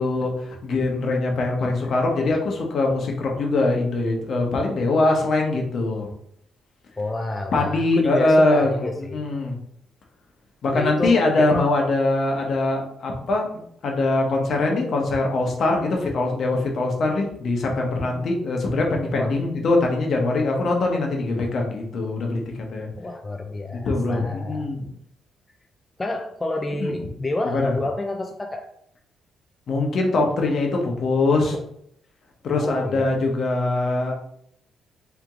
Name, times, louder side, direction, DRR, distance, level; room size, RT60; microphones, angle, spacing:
voice 1, 0.0-6.1 7.5-9.6 10.6-13.5 13.8-22.4 22.7-22.9 23.9-24.8 26.8-26.9 27.4-27.7 29.7-31.6 32.4-34.1, left 2 dB, 60° left, 1 dB, 1.0 m, -22 dB
voice 2, 1.6-2.0 7.0-9.3 10.7-11.7 18.1-18.3 19.2-19.4 23.0-24.7 26.0-28.7 32.5-33.3, left 2 dB, 20° left, 3 dB, 0.4 m, -29 dB
3.5 x 3.0 x 3.6 m, 0.72 s
cardioid pair, 90°, 0 cm